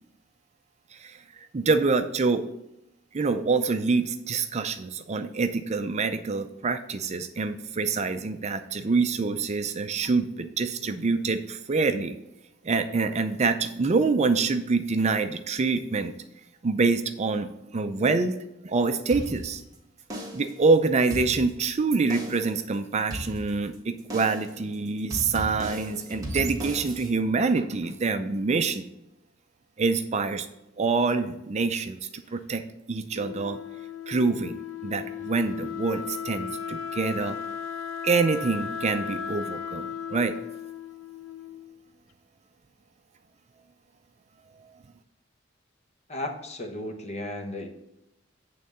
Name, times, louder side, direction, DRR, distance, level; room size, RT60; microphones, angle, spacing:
voice 1, 0.9-2.5 3.1-12.2 12.6-16.1 16.6-17.5 17.7-18.3 18.6-19.6 20.3-28.8 29.8-30.5 30.8-32.0 32.3-32.6 32.9-33.6 34.1-34.6 34.8-37.4 38.0-40.3, right 4 dB, 35° right, 9 dB, 0.4 m, -26 dB
sound 1, 19.1-19.7 20.1-20.6 21.0-21.7 22.1-22.6 23.1-23.7 24.1-24.6 25.1-27.1, equal, 20° right, 1.5 m, -36 dB
Wind instrument woodwind instrument, 33.1-41.9, left 7 dB, 85° left, 0.5 m, -36 dB
voice 2, 46.1-47.7, left 1 dB, 35° left, 4 dB, 1.1 m, -34 dB
8.6 x 3.8 x 6.8 m, 0.86 s
head